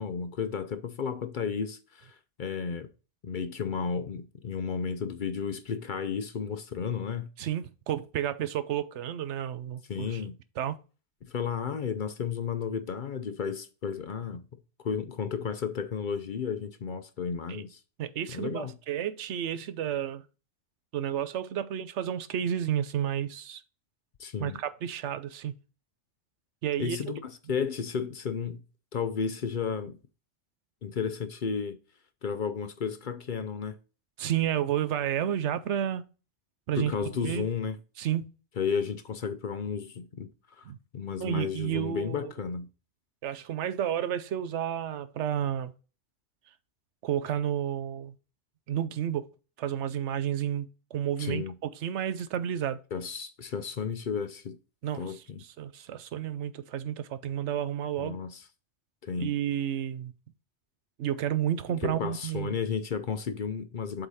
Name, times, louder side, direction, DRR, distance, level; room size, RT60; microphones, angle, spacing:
voice 1, 0.0-2.9 3.2-7.3 9.9-10.4 11.2-14.5 14.8-17.8 18.3-18.7 24.2-24.6 26.8-28.6 28.9-30.0 30.8-31.8 32.2-33.7 36.7-37.8 38.6-40.3 40.6-40.7 40.9-42.7 51.2-51.5 52.9-54.6 55.0-55.4 58.0-58.3 59.0-59.3 61.8-64.1, left 6 dB, 50° left, 0.7 m, -33 dB
voice 2, 7.4-10.2 10.6-10.8 17.5-17.6 18.0-20.2 20.9-23.6 24.4-25.5 26.6-27.0 34.2-36.0 36.7-36.9 37.2-37.5 38.0-38.3 40.7-40.8 41.2-42.3 43.2-45.7 47.0-48.1 48.7-49.3 49.6-52.8 54.8-58.2 59.2-60.1 61.0-62.6, right 10 dB, 80° right, 0.9 m, -31 dB
8.0 x 3.8 x 4.2 m
omnidirectional pair, 1.2 m